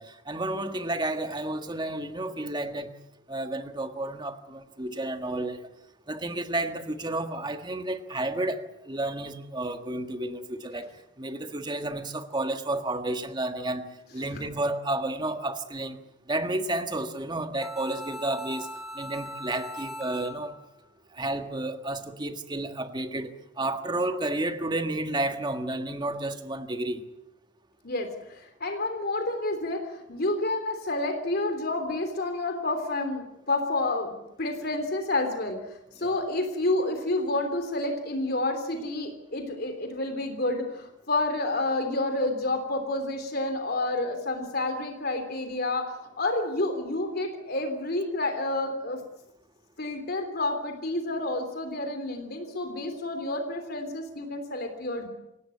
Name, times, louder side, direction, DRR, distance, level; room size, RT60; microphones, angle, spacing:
voice 1, 0.0-2.9 3.3-5.6 6.1-16.0 16.3-18.7 18.9-20.6 21.1-27.0 36.0-36.2, right 2 dB, 25° right, 1.6 m, -31 dB
voice 2, 14.1-14.5 27.8-49.0 49.8-55.1, left 2 dB, 55° left, 3.3 m, -29 dB
sound 1, 17.6-20.6, equal, ahead, 3.4 m, -39 dB
27.5 x 17.0 x 8.5 m
head